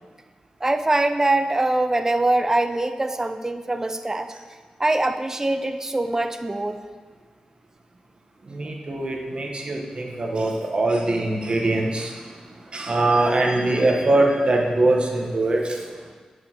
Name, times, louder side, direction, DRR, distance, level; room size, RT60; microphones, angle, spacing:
voice 1, 0.6-4.3 4.8-6.8, right 2 dB, 20° right, 8 dB, 0.5 m, -23 dB
voice 2, 8.5-12.1 12.7-15.6, right 2 dB, 45° right, 0 dB, 1.1 m, -22 dB
8.7 x 6.4 x 2.9 m, 1.5 s
cardioid pair, 60°, 2 cm